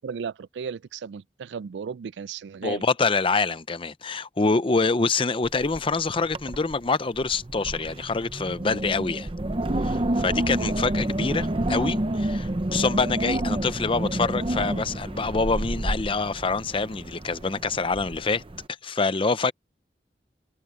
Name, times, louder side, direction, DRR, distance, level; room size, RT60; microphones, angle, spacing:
voice 1, 0.0-2.8, right 6 dB, 85° right, 0.4 m, -35 dB
voice 2, 2.6-9.3 9.8-18.4 18.8-19.5, left 4 dB, 30° left, 0.6 m, -26 dB
Wind, 5.4-5.9 6.2-6.7 7.2-18.6, right 1 dB, 30° right, 0.8 m, -29 dB
head